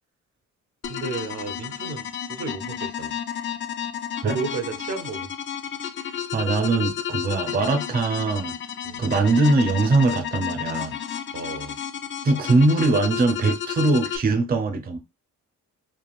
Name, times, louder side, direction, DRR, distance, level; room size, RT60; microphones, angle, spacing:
sound 1, 0.8-14.2, left 9 dB, 40° left, 0.5 m, -32 dB
voice 1, 0.9-3.1 4.2-5.3 8.8-9.1 11.3-11.8, right 4 dB, 65° right, 0.8 m, -32 dB
voice 2, 6.3-8.5 9.0-11.0 12.2-15.0, right 3 dB, 30° right, 0.6 m, -21 dB
3.3 x 2.3 x 2.4 m
cardioid pair, 90°, 30 cm